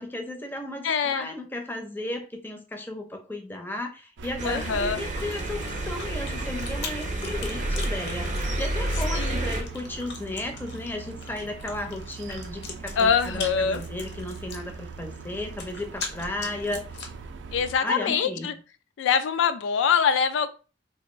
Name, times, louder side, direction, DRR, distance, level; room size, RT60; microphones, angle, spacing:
voice 1, 0.0-5.6 5.9-17.0 17.8-18.5, left 1 dB, 10° left, 4 dB, 0.5 m, -34 dB
voice 2, 0.8-1.3 4.4-5.0 9.1-9.5 13.0-13.8 17.5-18.5 19.0-20.5, left 6 dB, 90° left, 11 dB, 0.3 m, -24 dB
sound 1, 4.2-17.8, right 5 dB, 80° right, 0.4 m, -40 dB
Chewing mastication, 4.4-17.3, left 4 dB, 65° left, 0.7 m, -42 dB
sound 2, 4.4-9.6, right 1 dB, 45° right, 0.6 m, -30 dB
3.3 x 2.4 x 3.0 m, 0.35 s
head